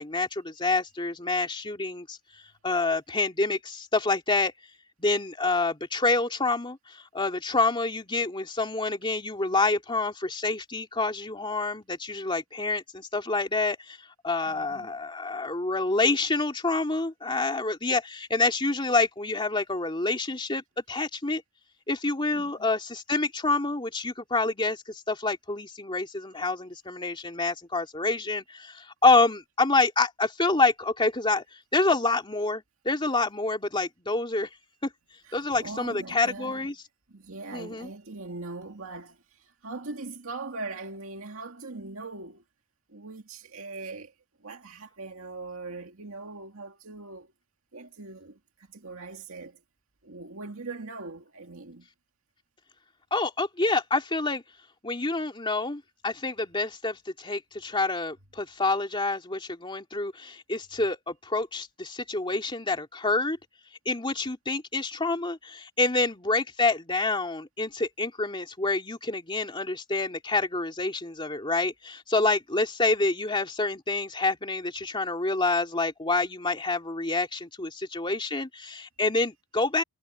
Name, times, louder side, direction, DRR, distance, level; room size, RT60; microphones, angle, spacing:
voice 1, 0.0-2.2 2.6-4.5 5.0-14.0 14.2-21.4 21.9-31.4 31.7-34.5 34.8-34.9 35.3-36.7 37.5-37.9 53.1-54.4 54.8-63.4 63.8-79.8, left 3 dB, 25° left, 2.9 m, -27 dB
voice 2, 14.5-14.9 22.3-22.7 35.2-36.7 37.1-42.4 42.9-44.1 44.4-47.3 47.7-49.6 50.0-51.9, right 3 dB, 70° right, 2.3 m, -41 dB
head